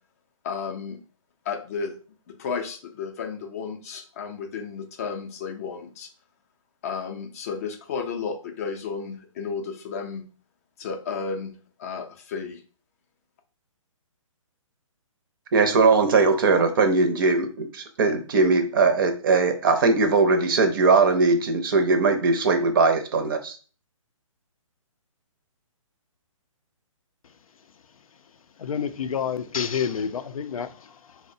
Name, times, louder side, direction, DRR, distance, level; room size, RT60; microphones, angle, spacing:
voice 1, 0.4-1.0 1.5-2.0 2.3-6.1 6.8-10.3 10.8-12.6, left 5 dB, 25° left, 0.4 m, -33 dB
voice 2, 15.5-23.6, right 4 dB, 40° right, 0.5 m, -20 dB
voice 3, 28.6-31.2, left 7 dB, 85° left, 0.4 m, -29 dB
4.2 x 2.1 x 2.6 m
hypercardioid pair, 155°, 17 cm